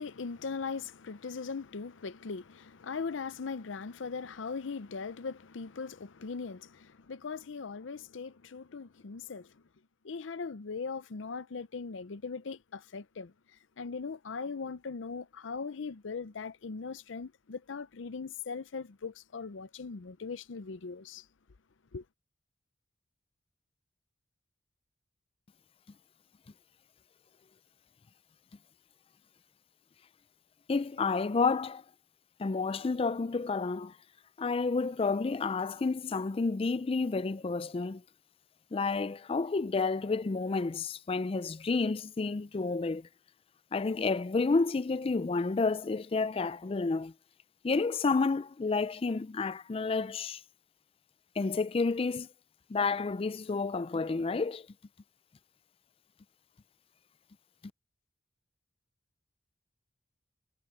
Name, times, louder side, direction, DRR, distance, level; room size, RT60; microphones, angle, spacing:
voice 1, 0.0-9.6 10.0-21.3 21.9-22.0, left 5 dB, 80° left, 0.6 m, -40 dB
voice 2, 30.7-31.8 32.4-33.9 34.4-38.0 38.7-43.1 43.7-47.1 47.6-50.4 51.4-52.3 52.7-54.7, left 4 dB, 30° left, 0.4 m, -30 dB
head